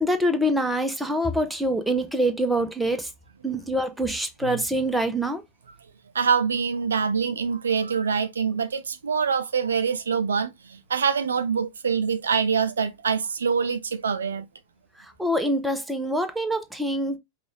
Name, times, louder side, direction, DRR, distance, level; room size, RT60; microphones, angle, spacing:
voice 1, 0.0-3.1 3.4-5.4 15.0-17.2, equal, 5° right, 0.7 m, -25 dB
voice 2, 6.1-14.5, right 6 dB, 70° right, 0.4 m, -25 dB
5.1 x 2.4 x 3.1 m
figure-of-eight pair, 90°, 0 cm